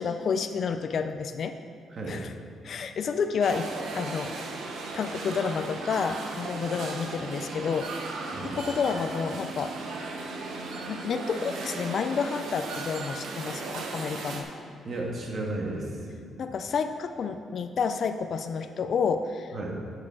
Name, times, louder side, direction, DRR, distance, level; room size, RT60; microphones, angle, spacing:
voice 1, 0.0-1.6 2.0-2.3 2.6-4.6 4.9-9.7 10.9-14.5 16.4-19.7, left 5 dB, 50° left, 8 dB, 0.4 m, -30 dB
sound 1, 3.4-14.4, right 3 dB, 75° right, 1.1 m, -36 dB
voice 2, 14.8-16.1 19.5-19.7, right 2 dB, 45° right, 0 dB, 1.6 m, -33 dB
9.9 x 6.5 x 4.8 m, 2.3 s
cardioid pair, 125°, 0 cm